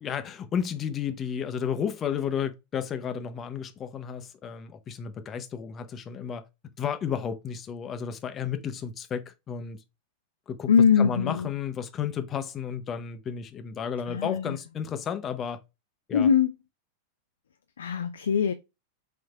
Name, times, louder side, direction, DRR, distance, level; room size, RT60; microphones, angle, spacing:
voice 1, 0.0-6.4 6.8-9.8 10.5-10.7 11.0-15.6 16.1-16.3, left 7 dB, 25° left, 0.6 m, -32 dB
voice 2, 10.7-11.5 14.1-14.6 16.1-16.5 17.8-18.5, left 7 dB, 65° left, 0.3 m, -22 dB
5.5 x 2.6 x 2.3 m
figure-of-eight pair, 90°, 0 cm